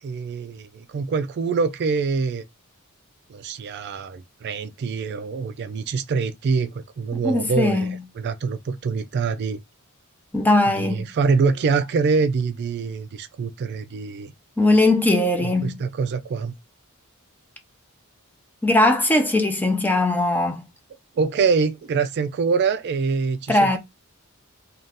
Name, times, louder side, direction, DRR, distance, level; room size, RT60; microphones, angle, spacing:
voice 1, 0.0-2.4 3.3-7.9 8.2-9.6 10.8-14.3 15.4-16.5 21.2-23.8, right 5 dB, 50° right, 0.3 m, -25 dB
voice 2, 7.1-8.0 10.3-11.0 14.6-15.7 18.6-20.6 23.5-23.8, left 2 dB, 10° left, 0.6 m, -19 dB
2.6 x 2.4 x 3.3 m
head